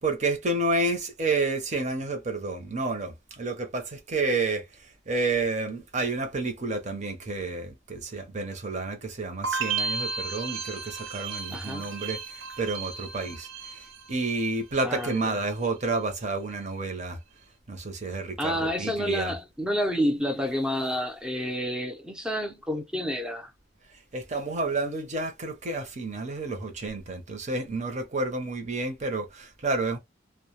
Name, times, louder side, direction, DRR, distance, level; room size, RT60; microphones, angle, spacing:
voice 1, 0.0-4.6 5.1-12.2 12.6-13.5 14.1-17.2 17.7-19.3 24.1-30.0, right 3 dB, 40° right, 0.7 m, -30 dB
sound 1, 9.4-14.5 14.8-15.4, right 5 dB, 80° right, 0.6 m, -34 dB
voice 2, 11.5-11.9 14.8-15.4 18.4-23.5, equal, 5° right, 0.6 m, -29 dB
2.2 x 2.1 x 2.9 m
head